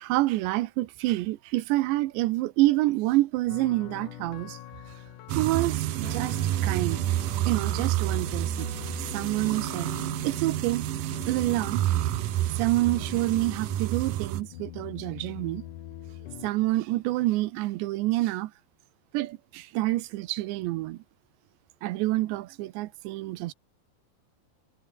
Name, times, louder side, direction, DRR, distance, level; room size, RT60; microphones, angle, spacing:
voice 1, 0.0-4.6 5.4-7.0 7.3-8.7 9.0-9.9 10.2-10.9 11.2-12.0 12.5-15.6 16.4-18.5 19.1-21.0 21.8-23.5, right 18 dB, 85° right, 3.1 m, -27 dB
sound 1, 3.5-16.5, left 12 dB, 65° left, 2.1 m, -43 dB
sound 2, 5.3-14.4, right 14 dB, 70° right, 2.2 m, -29 dB
omnidirectional pair, 5.1 m